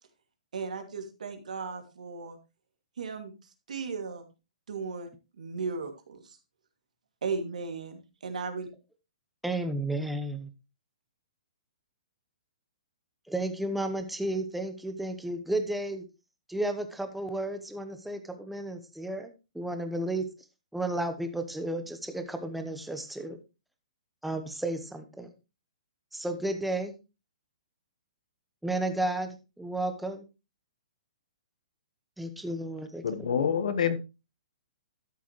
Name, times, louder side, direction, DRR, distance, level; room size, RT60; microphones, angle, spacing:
voice 1, 0.5-2.4 3.0-3.3 3.7-4.2 4.7-5.1 5.4-6.4 7.2-8.7, right 4 dB, 85° right, 5 dB, 2.5 m, -36 dB
voice 2, 9.4-10.5 13.3-16.0 16.5-19.3 19.5-20.2 20.7-23.4 24.2-25.3 26.1-26.9 28.6-30.2 32.2-33.0 33.4-33.7, right 1 dB, ahead, 7 dB, 0.9 m, -33 dB
voice 3, 33.0-34.0, left 7 dB, 75° left, 13 dB, 1.3 m, -27 dB
12.5 x 7.1 x 3.1 m, 0.28 s
hypercardioid pair, 165°, 4 cm